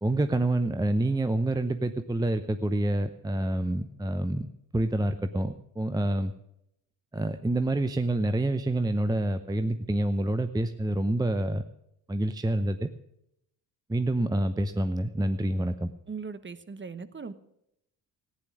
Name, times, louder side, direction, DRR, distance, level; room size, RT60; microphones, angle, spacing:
voice 1, 0.0-4.5 4.7-6.3 7.1-11.6 12.1-12.9 13.9-15.9, right 1 dB, 10° right, 10 dB, 0.7 m, -27 dB
voice 2, 16.1-17.3, right 5 dB, 25° right, 14 dB, 1.1 m, -39 dB
15.0 x 10.0 x 6.2 m, 0.79 s
hypercardioid pair, 50°, 49 cm